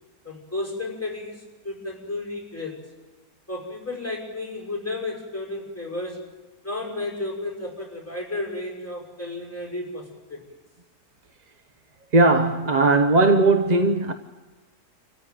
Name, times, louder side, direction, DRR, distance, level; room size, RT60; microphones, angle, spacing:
voice 1, 0.2-2.8 3.5-6.3 6.6-10.4, left 2 dB, 10° left, 5.7 m, -33 dB
voice 2, 12.1-14.1, right 3 dB, 35° right, 0.8 m, -18 dB
27.0 x 15.0 x 9.2 m
omnidirectional pair, 1.6 m